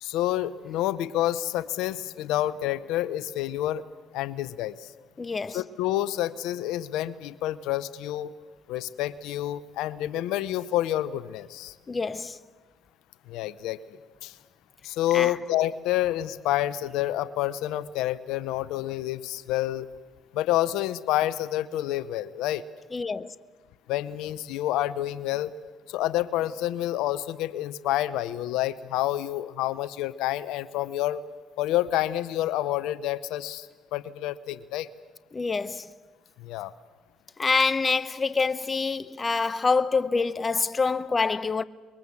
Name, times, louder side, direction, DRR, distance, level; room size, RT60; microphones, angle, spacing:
voice 1, 0.0-3.8 4.1-4.9 5.5-8.3 8.7-11.7 13.3-13.8 14.2-14.3 14.8-19.9 20.3-22.6 23.9-25.5 25.9-31.2 31.6-34.9 36.4-36.7, left 13 dB, 75° left, 0.7 m, -28 dB
voice 2, 5.2-5.6 11.9-12.4 15.1-15.3 22.9-23.3 35.3-35.9 37.4-41.6, left 4 dB, 30° left, 0.8 m, -26 dB
24.5 x 22.0 x 7.2 m
supercardioid pair, 65°, 0 cm